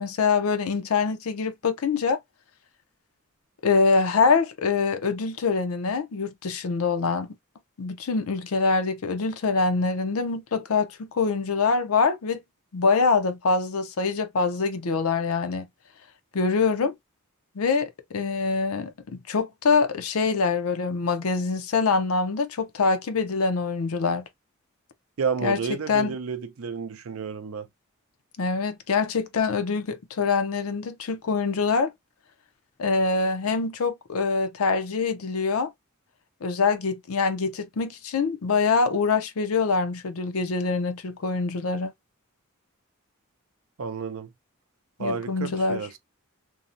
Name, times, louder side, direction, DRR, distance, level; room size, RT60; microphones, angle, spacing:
voice 1, 0.0-2.2 3.6-7.3 7.8-12.4 12.7-15.7 16.3-16.9 17.6-24.2 25.4-25.6 25.9-26.2 28.4-31.9 32.8-35.7 36.4-41.9 45.0-45.8, left 4 dB, 75° left, 0.5 m, -24 dB
voice 2, 25.2-27.7 43.8-44.3 45.0-46.0, right 5 dB, 70° right, 0.5 m, -31 dB
2.7 x 2.1 x 2.5 m
head